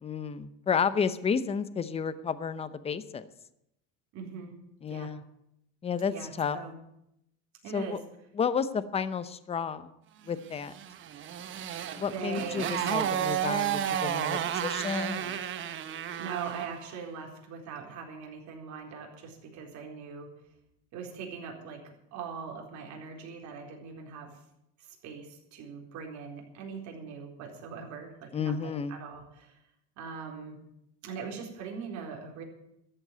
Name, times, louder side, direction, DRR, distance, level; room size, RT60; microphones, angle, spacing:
voice 1, 0.0-3.3 4.8-5.2 5.8-6.6 7.7-8.0 8.4-9.9 10.3-10.7 11.9-15.4 28.3-28.9, left 6 dB, 15° left, 14 dB, 0.7 m, -31 dB
voice 2, 4.1-4.6 4.9-5.1 6.1-6.8 7.6-8.0 12.0-12.8 16.2-20.3 20.9-24.4 24.8-29.6 30.0-30.6 31.0-32.4, right 6 dB, 50° right, 0 dB, 4.2 m, -41 dB
Motorcycle, 10.7-16.8, right 10 dB, 30° right, 1.0 m, -32 dB
13.5 x 7.9 x 9.3 m, 0.81 s
cardioid pair, 140°, 37 cm